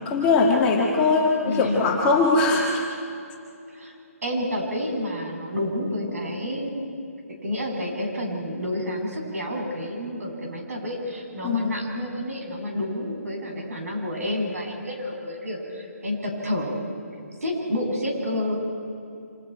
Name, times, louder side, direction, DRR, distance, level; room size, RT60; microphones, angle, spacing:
voice 1, 0.0-2.8 11.4-11.7, left 3 dB, 10° left, -3 dB, 1.5 m, -21 dB
voice 2, 1.4-1.9 3.7-3.9 4.2-7.0 7.4-16.7 17.4-18.6, left 1 dB, 70° right, 0 dB, 7.9 m, -29 dB
27.5 x 27.0 x 4.7 m, 2.5 s
hypercardioid pair, 175°, 8 cm